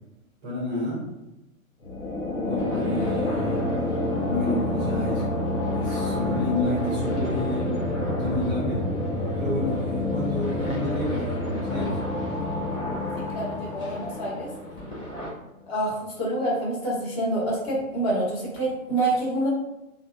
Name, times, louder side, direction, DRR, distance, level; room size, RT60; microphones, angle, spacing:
voice 1, 0.4-1.0 2.4-3.6 4.3-5.3 5.7-8.8 9.4-12.3, left 1 dB, 10° right, -8 dB, 0.4 m, -30 dB
sound 1, 1.8-14.9, left 2 dB, 70° left, 1.2 m, -28 dB
sound 2, 2.6-15.3, equal, 10° left, 0.8 m, -39 dB
voice 2, 13.2-14.5 15.7-19.5, right 1 dB, 45° left, -4 dB, 1.4 m, -27 dB
3.3 x 2.1 x 2.6 m, 0.93 s
figure-of-eight pair, 120°, 42 cm